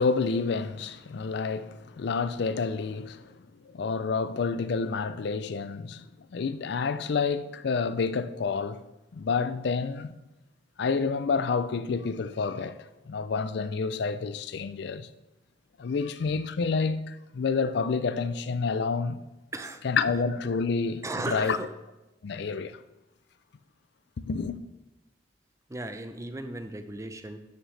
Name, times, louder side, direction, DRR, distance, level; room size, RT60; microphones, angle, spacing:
voice 1, 0.0-3.4 3.6-8.8 9.1-10.1 10.8-15.1 15.8-19.2 19.8-21.6 22.2-22.8 24.3-24.6, left 4 dB, 65° left, 0.4 m, -29 dB
voice 2, 19.5-19.8 21.0-21.7 25.7-27.4, right 2 dB, 15° right, 0.5 m, -36 dB
11.0 x 6.4 x 3.3 m
head